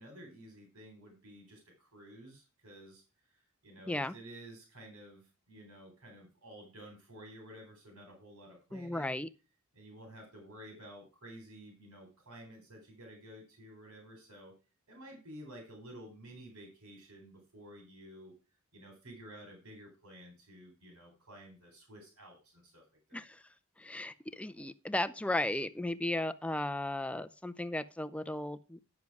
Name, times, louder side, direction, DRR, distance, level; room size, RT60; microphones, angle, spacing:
voice 1, 0.0-9.2 9.7-14.5 14.9-18.3 18.7-23.2, right 1 dB, 85° right, 2 dB, 3.8 m, -52 dB
voice 2, 8.7-9.3 23.1-23.4 23.8-28.8, left 1 dB, 5° left, 12 dB, 0.4 m, -35 dB
10.5 x 7.3 x 4.7 m, 0.31 s
head